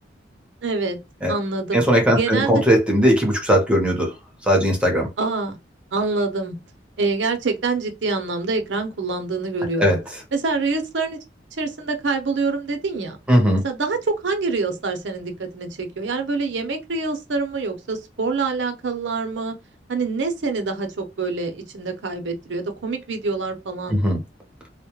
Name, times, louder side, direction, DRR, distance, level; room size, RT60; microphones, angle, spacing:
voice 1, 0.6-1.0 1.3-1.8 2.1-2.6 5.2-5.6 5.9-6.5 7.0-10.0 10.3-11.2 11.5-13.2 13.6-19.6 19.9-24.2, right 3 dB, 80° right, 0.6 m, -26 dB
voice 2, 1.7-4.1 4.5-5.1 9.8-10.0 13.3-13.6 23.9-24.2, equal, 5° right, 0.8 m, -18 dB
2.2 x 2.1 x 2.9 m
head